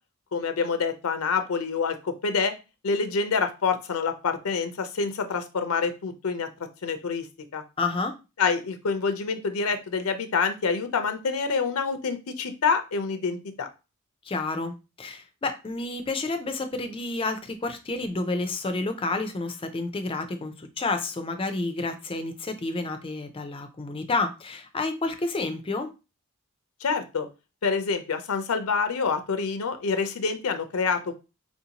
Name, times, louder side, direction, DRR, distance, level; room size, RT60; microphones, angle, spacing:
voice 1, 0.3-2.5 2.8-6.5 6.8-7.3 7.5-7.6 8.4-13.7 26.8-27.3 27.6-31.1, left 5 dB, 80° left, 9 dB, 0.5 m, -27 dB
voice 2, 7.8-8.1 14.3-25.9, left 3 dB, 25° left, 8 dB, 0.4 m, -30 dB
4.2 x 2.7 x 2.8 m, 0.29 s
head